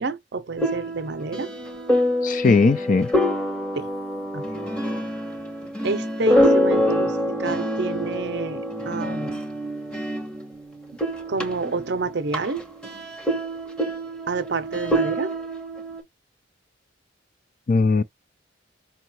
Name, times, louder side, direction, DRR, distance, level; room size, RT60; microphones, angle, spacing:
voice 1, 0.0-1.5 3.8-3.9 4.3-4.5 5.8-9.4 11.3-12.6 14.3-15.3, right 4 dB, 55° right, 0.6 m, -29 dB
sound 1, 0.6-10.6 10.9-16.0, equal, 5° left, 1.0 m, -26 dB
voice 2, 2.2-3.1 17.7-18.0, left 4 dB, 40° left, 0.3 m, -19 dB
5.4 x 2.3 x 3.0 m
head